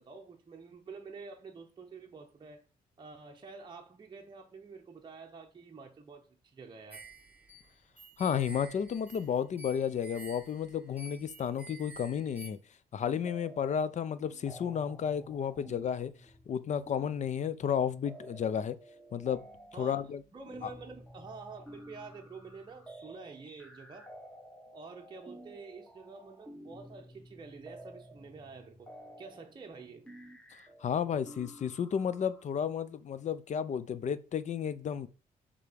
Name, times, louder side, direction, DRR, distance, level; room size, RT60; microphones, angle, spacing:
voice 1, 0.0-2.6 3.0-7.1 19.7-24.1 24.7-28.9 29.2-30.1, right 4 dB, 30° right, 0.8 m, -48 dB
sound 1, 6.9-12.5, right 1 dB, 10° right, 1.4 m, -50 dB
voice 2, 8.2-12.6 12.9-16.1 16.5-18.8 19.1-19.4 19.8-20.2 20.6-20.7 30.8-35.1, left 8 dB, 50° left, 0.6 m, -32 dB
sound 2, 13.3-13.9 14.1-32.4, right 1 dB, 5° left, 1.5 m, -52 dB
6.5 x 3.6 x 5.1 m
cardioid pair, 105°, 16 cm